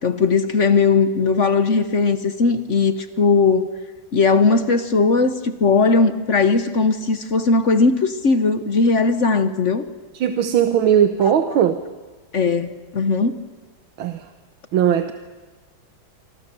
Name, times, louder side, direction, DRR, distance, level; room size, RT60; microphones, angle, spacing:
voice 1, 0.0-3.7 4.1-9.9 11.3-11.4 12.3-13.3, left 4 dB, 45° left, 10 dB, 1.1 m, -18 dB
voice 2, 10.1-11.8 14.0-14.2 14.7-15.1, right 9 dB, 80° right, 8 dB, 1.8 m, -18 dB
26.0 x 25.0 x 6.9 m, 1.3 s
omnidirectional pair, 2.2 m